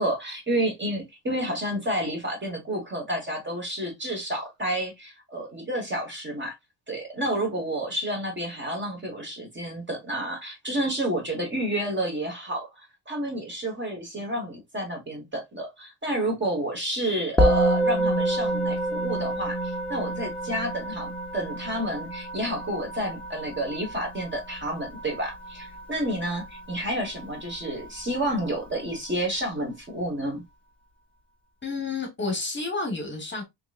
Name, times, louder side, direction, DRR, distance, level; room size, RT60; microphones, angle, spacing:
voice 1, 0.0-6.5 6.9-30.4, right 1 dB, 25° right, 1.4 m, -30 dB
Musical instrument, 17.4-26.9, right 1 dB, 5° left, 0.6 m, -28 dB
voice 2, 31.6-33.4, left 3 dB, 25° left, 1.2 m, -30 dB
3.8 x 3.1 x 2.4 m
wide cardioid pair, 140°, 43 cm